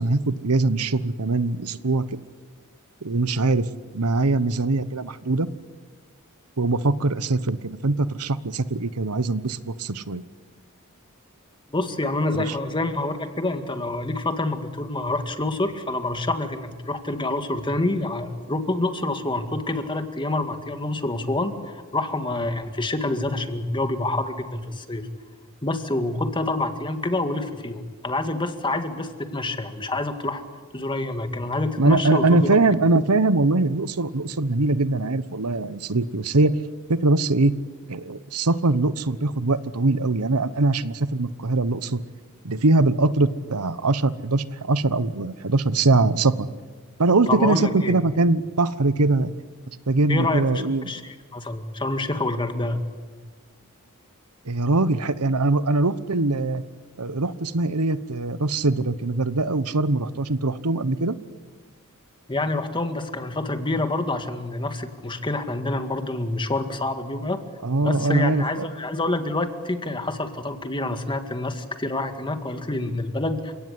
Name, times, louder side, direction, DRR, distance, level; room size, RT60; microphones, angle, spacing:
voice 1, 0.0-2.0 3.0-3.7 3.9-5.5 6.6-10.2 12.3-12.5 31.8-36.5 36.9-37.5 37.9-42.0 42.4-46.5 47.0-49.3 49.9-50.9 54.5-56.6 57.0-61.1 67.6-68.7, right 2 dB, 90° right, 15 dB, 1.1 m, -22 dB
voice 2, 11.7-25.1 25.6-30.4 30.7-32.6 47.3-48.0 50.1-52.8 62.3-67.4 67.8-73.5, left 2 dB, 20° left, 7 dB, 2.0 m, -27 dB
29.5 x 17.5 x 9.9 m, 1.4 s
head